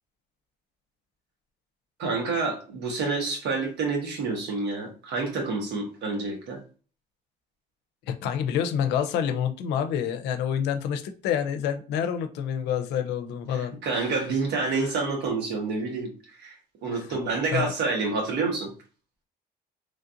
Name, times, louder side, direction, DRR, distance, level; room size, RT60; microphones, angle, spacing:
voice 1, 2.0-6.6 13.5-18.7, right 3 dB, 80° right, 1.2 m, -28 dB
voice 2, 8.1-14.1 14.7-14.8 16.9-17.0 17.5-17.7, left 8 dB, 90° left, 0.5 m, -28 dB
3.2 x 2.4 x 2.6 m
cardioid pair, 110°, 17 cm